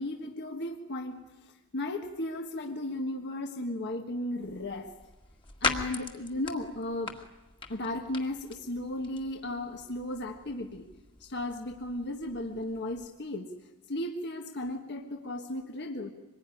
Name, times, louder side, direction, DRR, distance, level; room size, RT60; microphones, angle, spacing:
voice 1, 0.0-5.0 5.6-7.2 7.7-10.9 11.2-13.5 13.9-16.1, left 1 dB, 50° left, 4 dB, 1.5 m, -35 dB
sound 1, 4.4-13.1, left 3 dB, 25° left, 1.9 m, -40 dB
25.5 x 21.0 x 9.9 m, 1.1 s
head